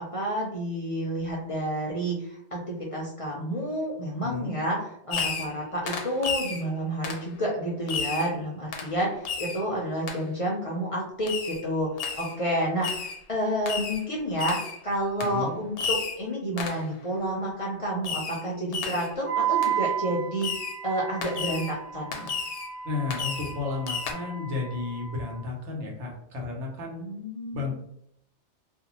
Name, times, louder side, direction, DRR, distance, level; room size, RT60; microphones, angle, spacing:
voice 1, 0.0-22.3 27.0-27.7, right 1 dB, 45° left, -4 dB, 0.5 m, -30 dB
voice 2, 4.2-4.6 15.2-15.6 22.8-27.0 27.5-27.7, left 3 dB, 90° right, -1 dB, 1.1 m, -33 dB
Fireworks, 5.1-5.6 5.9-6.6 7.0-7.3 7.9-8.3 8.7-8.9 9.3-9.6 10.1-10.2 11.3-11.6 12.0-12.4 12.8-13.2 13.7-14.0 14.4-14.8 15.2-15.4 15.8-16.2 16.6-16.9 18.0-18.4 18.7-19.1 19.6-19.7 20.4-20.8 21.2-21.7 22.1-22.7 23.1-23.6 23.9-24.1, left 6 dB, 75° left, 0.8 m, -32 dB
Wind instrument woodwind instrument, 19.2-25.4, right 9 dB, 55° right, 1.1 m, -33 dB
2.6 x 2.1 x 2.9 m, 0.71 s
omnidirectional pair, 1.2 m